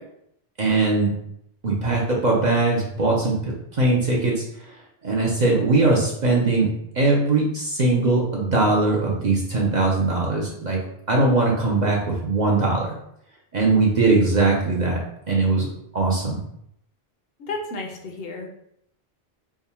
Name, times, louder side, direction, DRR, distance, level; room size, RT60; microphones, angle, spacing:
voice 1, 0.6-1.1 1.6-4.4 5.0-10.8 11.1-12.9 13.5-15.0 15.3-15.7 15.9-16.4, right 3 dB, 50° right, -3 dB, 0.7 m, -20 dB
voice 2, 17.4-18.5, left 3 dB, 65° left, 1 dB, 0.9 m, -32 dB
3.6 x 2.2 x 4.1 m, 0.75 s
omnidirectional pair, 1.1 m